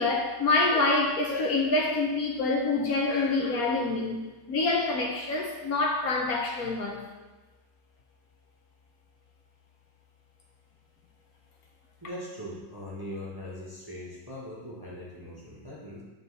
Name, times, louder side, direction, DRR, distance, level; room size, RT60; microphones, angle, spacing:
voice 1, 0.0-4.2 4.5-7.0, left 3 dB, 65° left, 0 dB, 1.1 m, -26 dB
voice 2, 12.0-16.0, left 1 dB, 20° right, -6 dB, 0.8 m, -40 dB
7.0 x 3.9 x 4.0 m, 1.2 s
omnidirectional pair, 1.8 m